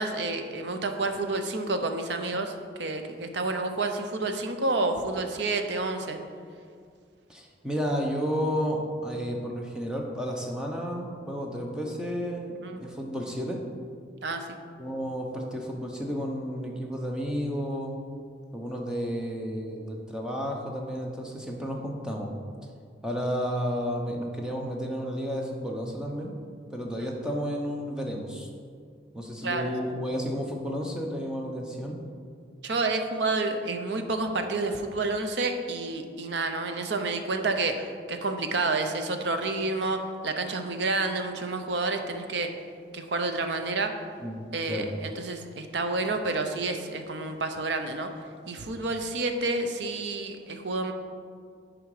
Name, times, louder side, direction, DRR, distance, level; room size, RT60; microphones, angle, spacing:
voice 1, 0.0-6.2 12.6-12.8 14.2-14.5 27.0-27.1 29.4-29.7 32.6-42.5 42.9-43.9 44.5-48.1 48.5-50.9, right 3 dB, 70° right, 6 dB, 0.7 m, -29 dB
voice 2, 7.3-13.6 14.8-17.9 18.5-22.3 23.0-26.3 26.7-28.5 29.1-32.0 44.2-44.4 44.7-44.9, equal, 5° right, 0 dB, 0.9 m, -32 dB
9.2 x 5.1 x 4.9 m, 2.1 s
head